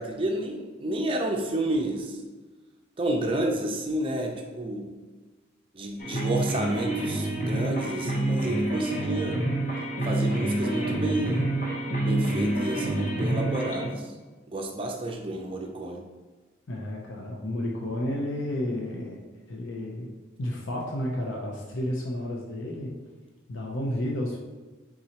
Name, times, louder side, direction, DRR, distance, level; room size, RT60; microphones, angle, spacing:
voice 1, 0.0-2.2 3.0-4.9 5.7-9.4 10.0-11.5 12.0-14.1 14.5-16.0, right 1 dB, 25° right, 2 dB, 0.5 m, -30 dB
sound 1, 6.0-13.9, right 1 dB, 40° left, 0.8 m, -27 dB
voice 2, 16.7-20.1 20.4-22.9 23.5-24.4, left 1 dB, 75° left, -2 dB, 0.6 m, -31 dB
4.4 x 3.8 x 2.8 m, 1.3 s
head